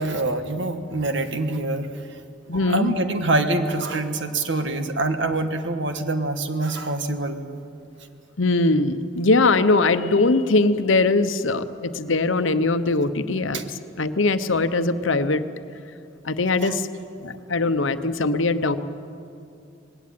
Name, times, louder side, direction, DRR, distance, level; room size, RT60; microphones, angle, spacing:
voice 1, 0.0-1.9 2.5-7.4 13.5-13.6 16.6-16.8, right 2 dB, 65° right, 8 dB, 1.5 m, -25 dB
voice 2, 2.5-3.0 8.4-13.6 14.0-15.4 16.2-16.9 17.2-18.8, left 3 dB, 75° left, 11 dB, 0.9 m, -21 dB
20.0 x 17.0 x 9.4 m, 2.5 s
head